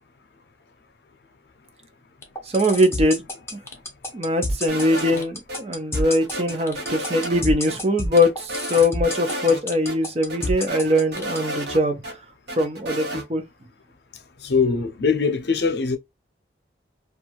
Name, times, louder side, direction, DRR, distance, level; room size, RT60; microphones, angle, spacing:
sound 1, 2.2-11.4, left 1 dB, 15° left, 0.6 m, -29 dB
voice 1, 2.5-3.2 3.5-3.6 4.1-12.1 12.6-13.4, left 1 dB, 35° right, 0.6 m, -22 dB
sound 2, 4.7-5.6 5.9-7.4 7.7-7.8 8.1-9.6 9.9-10.0 10.3-12.1 12.5-13.2, right 1 dB, 65° right, 1.0 m, -32 dB
voice 2, 14.4-16.0, left 5 dB, 65° left, 0.6 m, -22 dB
2.7 x 2.4 x 2.7 m
head